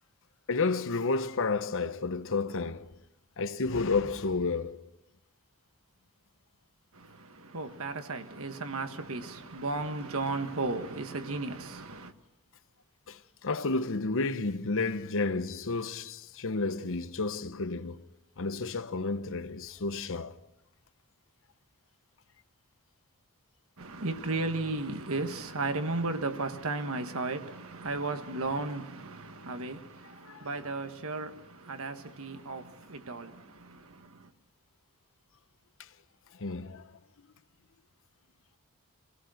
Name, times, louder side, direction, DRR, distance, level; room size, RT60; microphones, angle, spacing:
voice 1, 0.5-3.0 3.4-4.8 13.1-18.0 18.4-20.3 30.2-30.5 36.4-36.8, left 3 dB, 60° left, 0.9 m, -31 dB
voice 2, 6.9-12.1 23.8-34.3, right 3 dB, 65° right, 1.6 m, -35 dB
24.5 x 17.5 x 6.4 m
head